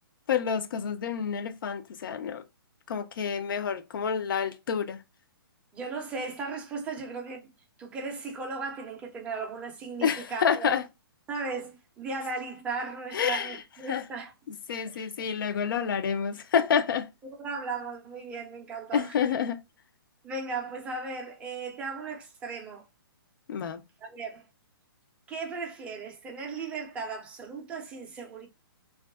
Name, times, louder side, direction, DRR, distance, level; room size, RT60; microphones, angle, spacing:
voice 1, 0.3-2.4 2.9-5.0 10.0-10.8 13.1-13.6 13.9-14.0 14.5-17.1 18.9-19.6 23.5-23.8, left 7 dB, 60° left, 0.4 m, -28 dB
voice 2, 5.7-7.5 7.8-10.7 11.3-14.3 14.9-15.1 17.4-19.3 20.2-22.8 24.0-24.4 25.3-28.5, right 4 dB, 10° right, 0.4 m, -36 dB
2.5 x 2.3 x 2.2 m
hypercardioid pair, 155°, 13 cm